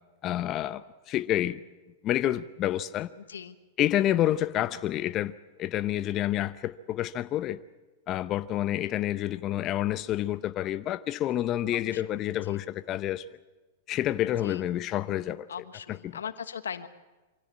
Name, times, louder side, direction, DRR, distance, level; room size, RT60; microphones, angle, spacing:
voice 1, 0.2-1.6 2.0-3.1 3.8-7.6 8.1-13.2 13.9-15.5 15.9-16.2, left 13 dB, 35° left, 0.7 m, -29 dB
voice 2, 3.2-3.5 11.7-12.0 12.4-12.6 14.4-14.6 15.5-16.9, left 7 dB, 85° left, 1.2 m, -39 dB
24.5 x 16.5 x 8.5 m
hypercardioid pair, 110°, 0 cm